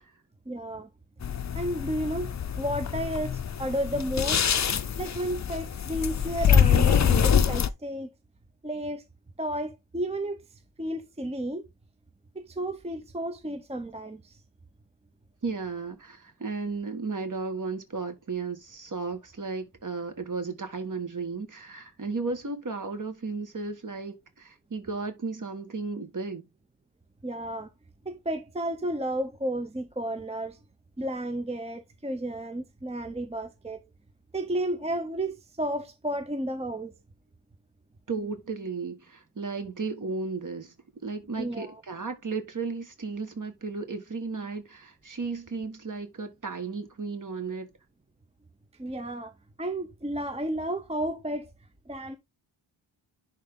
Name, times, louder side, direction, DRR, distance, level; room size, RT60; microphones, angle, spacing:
voice 1, 0.5-0.9 1.5-4.5 5.0-8.1 8.6-9.0 9.4-10.4 10.8-11.7 12.3-14.4 27.2-27.7 28.1-30.6 31.0-33.9 34.3-36.9 41.4-41.8 48.8-49.3 49.6-51.5 51.9-52.2, right 1 dB, 15° right, 0.7 m, -32 dB
sound 1, 1.2-7.7, left 7 dB, 35° left, 0.6 m, -25 dB
voice 2, 15.4-26.4 38.1-40.7 41.0-47.7, right 4 dB, 40° right, 1.7 m, -34 dB
10.5 x 3.8 x 3.7 m
wide cardioid pair, 170°, 47 cm